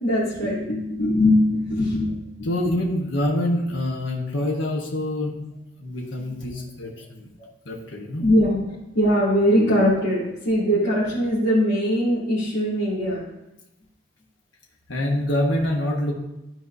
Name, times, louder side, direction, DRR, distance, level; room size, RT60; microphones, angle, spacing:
voice 1, 0.0-2.5 8.2-8.6 8.9-13.2, left 1 dB, 65° left, -12 dB, 2.5 m, -21 dB
voice 2, 2.4-5.3 5.8-7.3 7.6-8.3 14.9-16.1, left 1 dB, 85° left, -1 dB, 1.1 m, -25 dB
12.0 x 4.6 x 2.7 m, 0.92 s
head